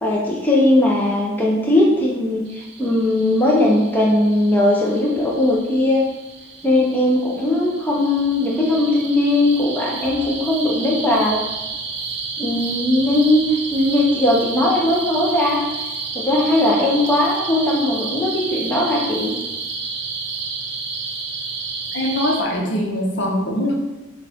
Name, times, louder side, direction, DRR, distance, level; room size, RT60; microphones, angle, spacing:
voice 1, 0.0-6.0 6.6-11.4 12.4-13.4 13.7-15.6 16.1-19.3, left 1 dB, 10° left, -4 dB, 0.6 m, -18 dB
sound 1, 2.5-22.4, right 4 dB, 60° right, 0.6 m, -31 dB
voice 2, 21.9-23.7, left 1 dB, 60° left, -1 dB, 0.8 m, -22 dB
6.1 x 2.3 x 3.5 m, 1.1 s
head